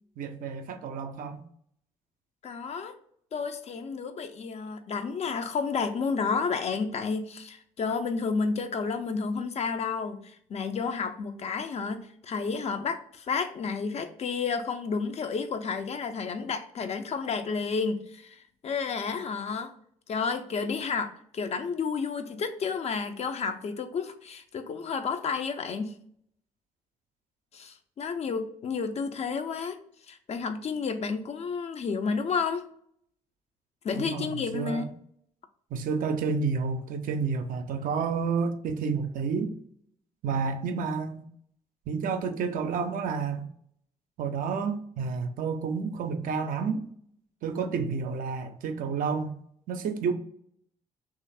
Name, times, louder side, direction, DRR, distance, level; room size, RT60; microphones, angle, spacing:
voice 1, 0.2-1.4 33.9-34.9 35.7-39.5 40.2-41.3 41.9-43.5 44.2-46.9 47.4-49.4 49.7-50.1, right 5 dB, 50° right, 0.4 m, -30 dB
voice 2, 2.4-2.9 3.3-19.7 20.1-26.0 27.5-29.8 30.1-32.7 33.8-34.9, left 5 dB, 35° left, 0.4 m, -31 dB
3.1 x 2.4 x 4.0 m
figure-of-eight pair, 45°, 18 cm